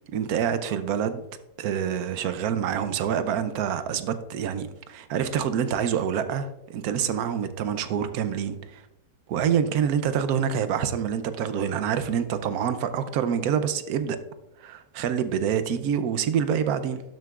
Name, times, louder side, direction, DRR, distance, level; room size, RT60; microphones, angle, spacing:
voice 1, 0.1-1.2 1.6-8.8 9.3-14.2 14.6-17.0, right 8 dB, 70° right, 1.0 m, -26 dB
12.5 x 6.8 x 2.4 m
omnidirectional pair, 1.8 m